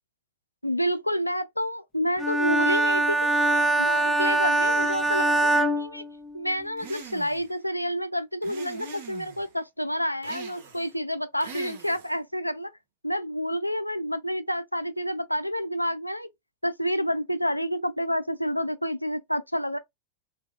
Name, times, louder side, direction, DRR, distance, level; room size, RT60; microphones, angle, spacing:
voice 1, 0.6-6.0 6.3-12.7 13.0-16.3 16.6-19.8, equal, 90° left, 0.4 m, -29 dB
Bowed string instrument, 2.2-6.7, right 2 dB, 10° left, 0.6 m, -23 dB
sound 1, 6.8-7.5 8.4-9.5 10.2-10.9 11.4-12.2, right 4 dB, 60° right, 0.9 m, -42 dB
3.1 x 2.5 x 2.3 m
figure-of-eight pair, 90°, 0 cm